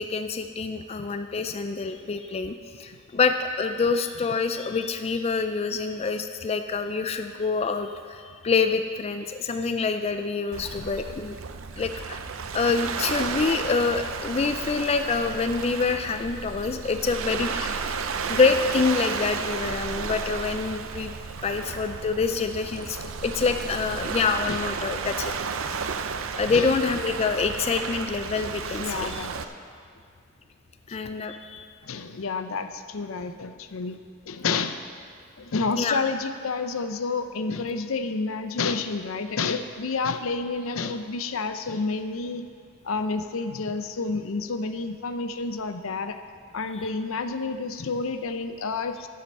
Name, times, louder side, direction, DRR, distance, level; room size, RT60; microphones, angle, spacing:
voice 1, 0.0-11.4 11.8-12.2 12.5-18.0 18.3-21.1 21.4-25.3 26.4-29.3 30.9-31.7 35.8-36.0, left 4 dB, 30° left, 7 dB, 0.4 m, -26 dB
Waves surf, 10.5-29.4, right 5 dB, 70° right, 0.6 m, -33 dB
voice 2, 28.8-29.3 30.9-31.0 31.8-34.0 34.3-34.8 35.4-42.5 42.8-46.2 46.5-49.1, left 4 dB, 75° left, 9 dB, 0.6 m, -29 dB
12.5 x 7.6 x 5.4 m, 2.2 s
head